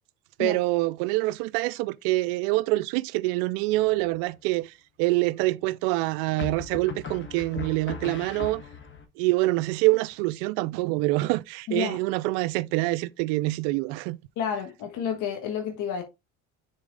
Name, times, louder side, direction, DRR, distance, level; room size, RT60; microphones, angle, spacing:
voice 1, 0.4-4.7 5.0-8.6 9.2-14.2, right 20 dB, 80° right, 0.5 m, -25 dB
sound 1, 3.7-4.3 6.4-9.0, left 6 dB, 35° left, 1.4 m, -38 dB
voice 2, 11.7-12.0 14.4-16.0, left 7 dB, 65° left, 1.6 m, -30 dB
6.4 x 4.0 x 3.9 m
supercardioid pair, 85°, 33 cm